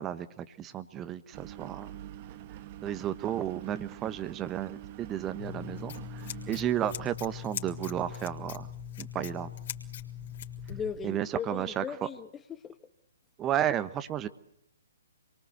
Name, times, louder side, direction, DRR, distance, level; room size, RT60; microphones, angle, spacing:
voice 1, 0.0-1.9 2.8-8.7 9.0-9.5 11.0-11.8 13.4-14.3, right 11 dB, 20° right, 12 dB, 1.2 m, -33 dB
Engine, 1.3-11.1, right 13 dB, 35° right, 1.2 m, -47 dB
Scissors, 5.4-10.8, left 12 dB, 45° left, 3.6 m, -41 dB
voice 2, 10.7-12.8, left 7 dB, 15° left, 12 dB, 1.2 m, -38 dB
27.5 x 23.5 x 8.1 m, 0.76 s
figure-of-eight pair, 125°, 0 cm